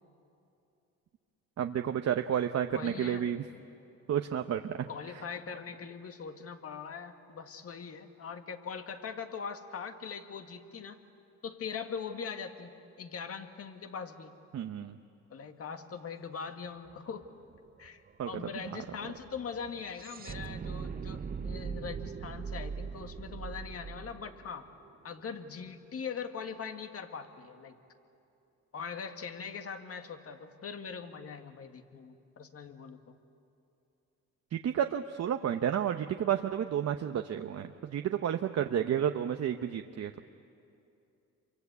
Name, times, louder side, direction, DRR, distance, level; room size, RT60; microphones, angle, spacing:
voice 1, 1.6-3.4 4.1-4.8 14.5-15.0 18.2-18.3 18.6-18.8 34.5-40.2, right 9 dB, 55° right, 6 dB, 0.9 m, -31 dB
voice 2, 2.7-3.3 4.9-11.0 11.4-14.4 15.3-17.3 17.8-24.7 25.0-27.8 28.7-33.1, left 6 dB, 50° left, 7 dB, 1.9 m, -41 dB
sound 1, 16.9-17.0 17.2-25.4, right 6 dB, 30° right, 0.7 m, -41 dB
28.0 x 24.0 x 8.3 m, 2.7 s
cardioid pair, 90°, 30 cm